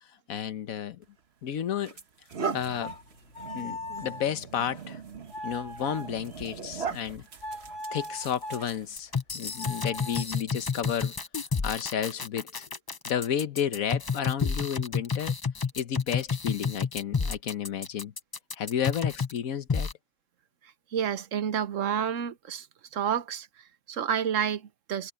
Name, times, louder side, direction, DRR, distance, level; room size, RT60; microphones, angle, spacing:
voice 1, 0.3-1.0 1.4-2.0 2.5-2.9 3.5-5.0 5.4-7.3 7.9-11.1 11.6-12.7 13.0-15.4 15.8-18.1 18.6-19.9, left 9 dB, 85° left, 1.4 m, -32 dB
sound 1, 1.0-1.2 1.8-9.2, right 5 dB, 50° right, 1.5 m, -39 dB
sound 2, 2.6-7.1 7.4-8.7 9.5-10.2, left 1 dB, 60° left, 3.1 m, -41 dB
sound 3, 9.0-19.4 19.7-19.9, left 5 dB, 35° left, 0.3 m, -30 dB
voice 2, 20.9-22.7 22.9-25.1, right 8 dB, 65° right, 1.3 m, -30 dB
omnidirectional pair, 1.4 m